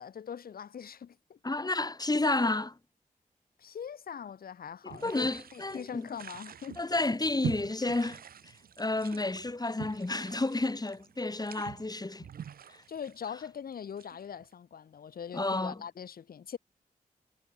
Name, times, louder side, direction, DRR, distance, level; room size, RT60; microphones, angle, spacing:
voice 1, 0.0-1.7 3.6-6.8 12.9-16.6, left 7 dB, 85° left, 3.1 m, -42 dB
voice 2, 1.4-2.7 4.9-6.1 6.8-8.2 8.8-12.3 12.7-12.8 15.3-15.8, left 2 dB, 25° left, 2.9 m, -31 dB
sound 1, 4.9-14.5, right 8 dB, 90° right, 2.0 m, -45 dB
cardioid pair, 45°, 15 cm